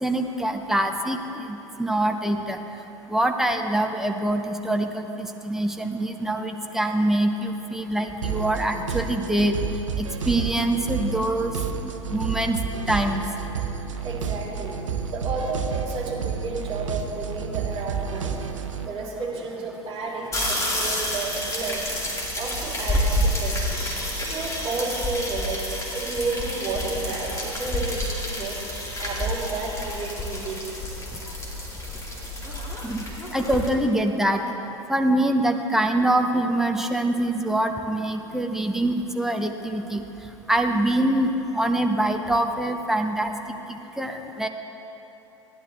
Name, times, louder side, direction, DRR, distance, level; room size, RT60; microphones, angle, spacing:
voice 1, 0.0-2.6 3.1-9.6 10.0-11.5 11.8-12.6 12.9-13.2 32.8-33.0 33.3-34.4 34.9-40.0 40.5-43.6 44.0-44.5, right 1 dB, 5° right, 4 dB, 0.8 m, -24 dB
sound 1, 8.2-18.9, right 6 dB, 75° right, 0.7 m, -30 dB
voice 2, 14.0-14.8 15.1-18.3 18.8-21.8 22.4-23.7 24.2-25.6 25.9-28.6 29.0-30.8, right 3 dB, 35° right, -4 dB, 3.1 m, -31 dB
sound 2, 20.3-33.7, left 1 dB, 20° left, 2.4 m, -29 dB
16.5 x 10.5 x 3.4 m, 3.0 s
figure-of-eight pair, 85°, 16 cm